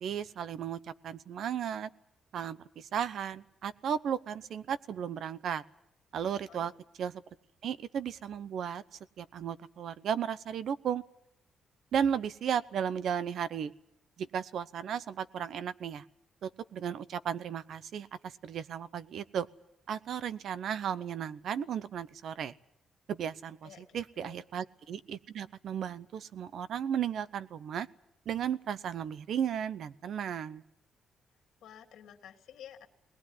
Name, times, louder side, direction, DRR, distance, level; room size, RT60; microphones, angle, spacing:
voice 1, 0.0-1.9 2.3-5.6 6.1-6.7 7.0-7.1 7.6-8.8 9.2-11.0 11.9-13.7 14.2-16.0 16.4-19.5 19.9-22.5 23.1-27.9 28.3-30.6, right 8 dB, 65° right, 15 dB, 0.9 m, -35 dB
voice 2, 23.6-24.4 31.6-32.9, left 10 dB, 85° left, 5 dB, 2.6 m, -52 dB
20.5 x 20.0 x 9.8 m, 0.79 s
cardioid pair, 130°, 0 cm